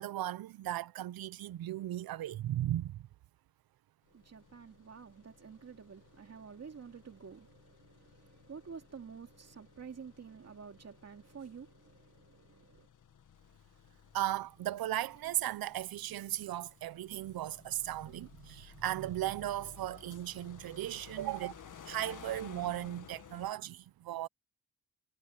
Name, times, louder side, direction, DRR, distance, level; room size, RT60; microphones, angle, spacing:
voice 1, 0.0-3.1 14.1-21.5 21.9-24.3, right 13 dB, 80° right, 0.7 m, -36 dB
sound 1, 4.1-23.5, left 8 dB, 60° left, 1.9 m, -56 dB
voice 2, 4.1-12.9, right 6 dB, 45° right, 2.5 m, -50 dB
cardioid pair, 100°, 36 cm